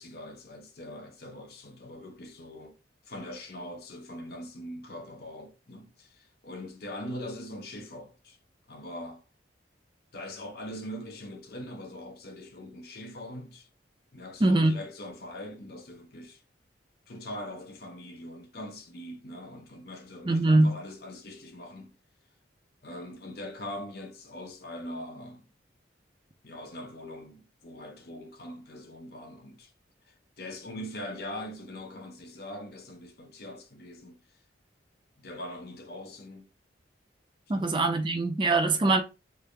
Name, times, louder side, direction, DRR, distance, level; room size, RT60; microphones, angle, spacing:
voice 1, 0.0-2.8 3.1-8.4 8.7-9.2 10.1-13.7 14.1-16.4 17.1-22.0 22.8-25.5 26.4-29.7 30.1-34.2 35.2-36.5 37.5-37.7 38.6-38.8, left 1 dB, 55° left, 0.7 m, -42 dB
voice 2, 14.4-14.8 20.3-20.7 37.5-39.0, right 2 dB, 25° right, 0.5 m, -22 dB
3.3 x 2.5 x 3.2 m
head